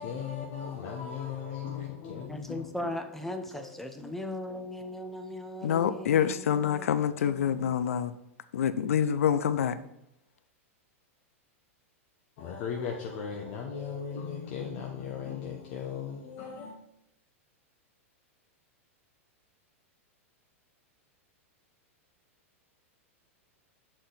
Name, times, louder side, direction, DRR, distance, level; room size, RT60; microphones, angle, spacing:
voice 1, 0.0-2.7 3.5-3.7 4.0-4.1 12.4-16.8, left 7 dB, 55° left, 0.8 m, -37 dB
voice 2, 2.3-7.0, left 1 dB, 5° left, 0.6 m, -39 dB
voice 3, 5.6-8.1 8.5-9.8, left 9 dB, 80° left, 0.4 m, -26 dB
6.2 x 4.2 x 3.9 m
hypercardioid pair, 115°, 8 cm